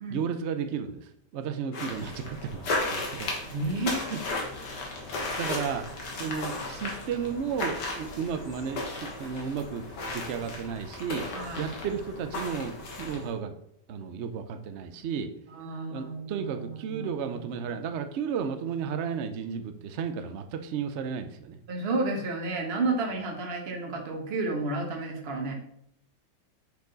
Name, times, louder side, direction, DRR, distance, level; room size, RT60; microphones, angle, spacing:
voice 1, 0.1-3.3 4.1-4.2 4.7-4.8 5.4-5.9 6.2-11.3 11.6-13.6 13.9-15.3 15.9-21.6, right 7 dB, 70° right, 8 dB, 0.6 m, -33 dB
sound 1, 1.7-13.3, left 2 dB, 85° left, 2.0 m, -35 dB
voice 2, 3.5-4.1 6.2-6.4 11.3-11.7 15.5-17.6 21.7-25.5, right 2 dB, 40° right, 2 dB, 1.3 m, -32 dB
7.0 x 4.8 x 3.9 m, 0.74 s
omnidirectional pair, 1.8 m